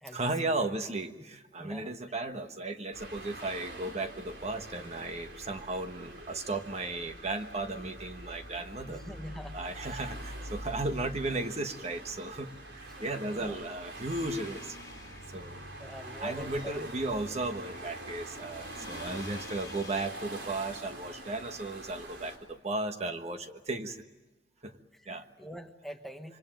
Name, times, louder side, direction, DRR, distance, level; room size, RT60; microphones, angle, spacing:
voice 1, 0.1-9.0 9.5-12.5 12.7-14.8 15.3-15.6 16.2-24.0 24.6-24.7 25.1-25.2, right 2 dB, 35° right, 7 dB, 1.3 m, -35 dB
voice 2, 1.6-1.9 8.9-10.0 12.9-13.6 15.8-16.9 24.9-26.4, equal, ahead, 5 dB, 1.2 m, -45 dB
sound 1, 2.9-22.4, right 1 dB, 70° right, 4.3 m, -45 dB
sound 2, 14.1-16.1 18.5-20.1, left 4 dB, 20° left, 3.8 m, -50 dB
27.0 x 24.0 x 9.1 m, 1.2 s
head